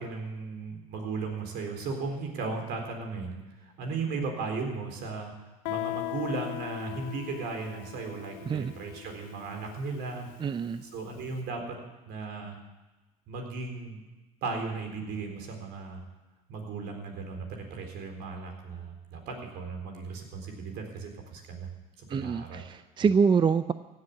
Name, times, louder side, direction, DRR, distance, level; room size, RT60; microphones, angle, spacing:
voice 1, 0.0-3.4 3.8-5.3 5.7-10.3 10.8-11.8 12.1-12.6 13.3-14.0 14.4-16.1 16.5-21.7 22.1-22.6 23.0-23.1, right 4 dB, 65° right, 3 dB, 4.0 m, -36 dB
Guitar, 5.6-11.1, left 19 dB, 70° left, 0.6 m, -39 dB
voice 2, 10.4-10.8 22.1-23.7, right 6 dB, 25° right, 13 dB, 0.5 m, -25 dB
16.0 x 7.9 x 9.4 m, 1.1 s
hypercardioid pair, 75°, 19 cm